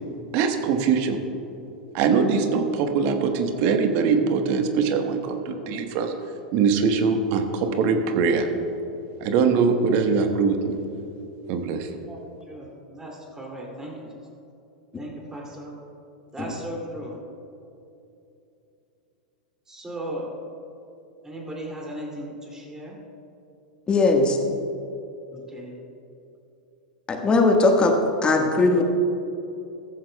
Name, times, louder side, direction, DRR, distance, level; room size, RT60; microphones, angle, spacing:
voice 1, 0.3-1.2 1.9-6.1 6.5-8.5 9.2-10.8 11.5-11.9, right 5 dB, 50° right, 6 dB, 1.2 m, -22 dB
voice 2, 12.5-14.1 15.0-15.7 16.3-17.2 19.7-20.3 21.2-22.9 25.3-25.7, right 1 dB, 10° right, -2 dB, 2.5 m, -36 dB
voice 3, 23.9-24.4 27.1-28.0 28.2-28.8, left 3 dB, 20° left, 3 dB, 1.4 m, -19 dB
14.5 x 13.5 x 2.3 m, 2.8 s
figure-of-eight pair, 95°, 5 cm